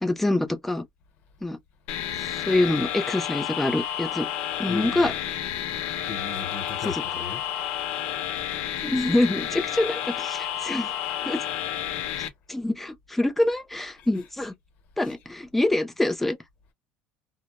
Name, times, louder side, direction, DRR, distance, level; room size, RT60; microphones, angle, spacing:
voice 1, 0.0-0.8 1.4-1.6 2.2-4.3 4.6-5.1 6.8-7.0 8.8-11.0 11.2-11.5 12.2-14.5 15.0-16.4, left 1 dB, 5° left, 0.5 m, -25 dB
sound 1, 1.9-12.3, left 11 dB, 80° left, 0.7 m, -31 dB
voice 2, 4.7-5.1 6.1-7.5 14.0-14.1 15.0-15.1, left 5 dB, 55° left, 0.9 m, -36 dB
2.1 x 2.1 x 2.9 m
cardioid pair, 135°, 3 cm